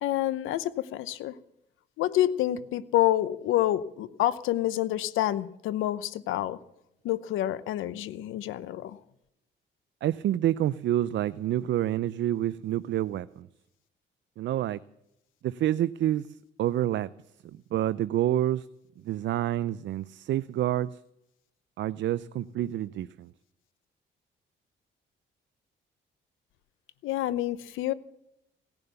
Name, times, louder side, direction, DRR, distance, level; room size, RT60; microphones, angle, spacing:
voice 1, 0.0-1.3 2.0-6.6 7.0-9.0 27.0-27.9, left 13 dB, 90° left, 16 dB, 0.8 m, -28 dB
voice 2, 10.0-13.5 14.4-14.8 15.4-16.3 16.6-17.1 17.7-18.7 19.0-21.0 21.8-23.3, right 12 dB, 65° right, 15 dB, 0.5 m, -28 dB
17.5 x 10.5 x 6.9 m, 0.82 s
cardioid pair, 90°, 20 cm